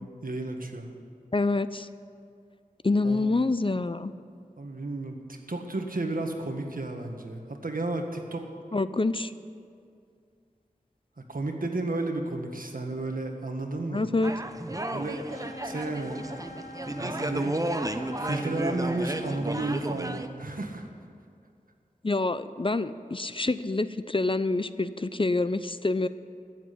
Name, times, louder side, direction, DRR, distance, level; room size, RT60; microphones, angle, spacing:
voice 1, 0.2-0.9 3.0-3.3 4.6-8.4 11.2-14.0 14.9-16.2 16.9-17.6 18.0-20.9, right 2 dB, 70° right, 3 dB, 1.7 m, -32 dB
voice 2, 1.3-1.9 2.8-4.1 8.7-9.3 13.9-14.3 22.0-26.1, left 3 dB, 35° left, 13 dB, 0.5 m, -26 dB
sound 1, 14.2-20.3, right 1 dB, 25° right, 0.8 m, -33 dB
sound 2, 15.3-19.4, left 1 dB, 70° left, 2.2 m, -44 dB
16.5 x 7.4 x 10.0 m, 2.3 s
wide cardioid pair, 55°, 15 cm